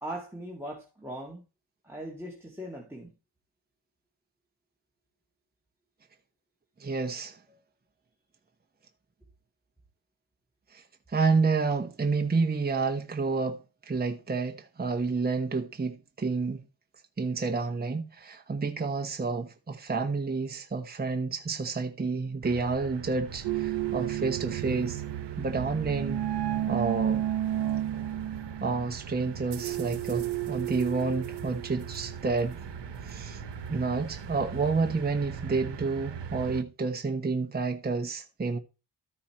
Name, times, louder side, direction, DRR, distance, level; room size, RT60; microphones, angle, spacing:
voice 1, 0.0-1.4 1.8-3.1, right 1 dB, 5° right, 2.1 m, -39 dB
voice 2, 6.8-7.4 10.7-10.8 11.1-16.6 17.2-25.0 25.4-26.2 26.7-27.2 28.6-32.6 33.0-33.4 33.7-38.6, right 4 dB, 25° right, 1.0 m, -29 dB
sound 1, 22.4-36.6, right 6 dB, 90° right, 1.0 m, -41 dB
sound 2, 23.4-32.5, right 13 dB, 70° right, 0.6 m, -33 dB
13.0 x 5.7 x 4.3 m
wide cardioid pair, 130°, 41 cm